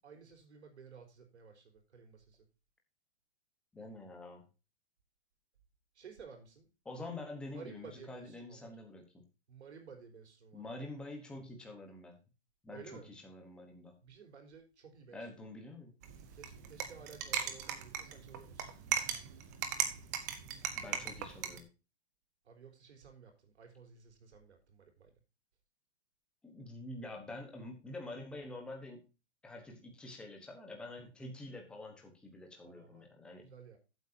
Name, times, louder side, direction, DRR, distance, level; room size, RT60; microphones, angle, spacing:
voice 1, 0.0-2.4 5.9-6.7 7.5-8.7 9.5-10.6 12.7-13.1 14.0-15.2 16.3-18.7 22.4-25.1 32.6-33.1 33.4-33.8, right 6 dB, 80° right, 5 dB, 3.9 m, -54 dB
voice 2, 3.7-4.5 6.8-9.2 10.5-12.2 12.6-13.9 15.1-15.9 20.7-21.7 26.4-29.0 29.4-33.5, left 2 dB, 5° left, 2 dB, 1.1 m, -47 dB
sound 1, 16.0-21.6, right 8 dB, 15° right, 0.7 m, -38 dB
14.0 x 8.0 x 2.8 m, 0.30 s
hypercardioid pair, 175°, 33 cm